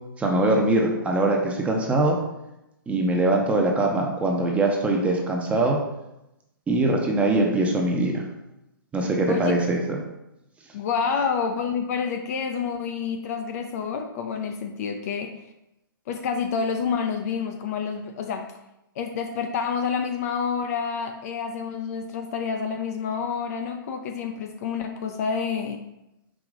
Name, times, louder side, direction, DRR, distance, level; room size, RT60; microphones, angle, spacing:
voice 1, 0.2-2.2 2.9-5.8 6.7-8.2 8.9-10.0, right 2 dB, 10° right, 0 dB, 0.6 m, -22 dB
voice 2, 10.7-15.3 16.1-18.5 19.0-25.8, left 6 dB, 45° left, 5 dB, 0.5 m, -28 dB
4.8 x 2.9 x 3.7 m, 0.90 s
hypercardioid pair, 130°, 12 cm